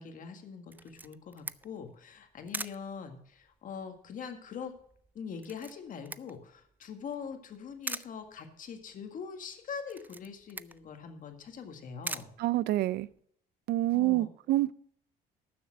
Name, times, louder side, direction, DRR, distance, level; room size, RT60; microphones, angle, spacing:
voice 1, 0.0-4.7 5.1-12.3 13.9-14.3, left 6 dB, 50° left, 6 dB, 1.8 m, -43 dB
Camera, 0.7-13.2, right 3 dB, 10° right, 0.3 m, -45 dB
voice 2, 12.4-13.1 13.7-14.7, right 16 dB, 70° right, 20 dB, 0.4 m, -27 dB
12.5 x 7.0 x 5.8 m, 0.65 s
cardioid pair, 110°, 17 cm